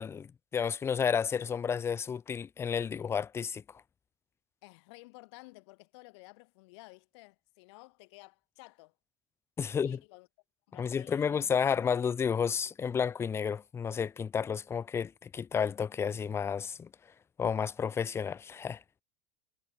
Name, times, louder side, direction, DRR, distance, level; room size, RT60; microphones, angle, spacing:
voice 1, 0.0-3.8 9.6-10.0 10.7-16.9 17.4-18.8, left 7 dB, 15° left, 0.4 m, -31 dB
voice 2, 4.6-8.9 9.6-10.3 10.7-11.4, left 25 dB, 55° left, 1.3 m, -54 dB
figure-of-eight pair, 85°, 17 cm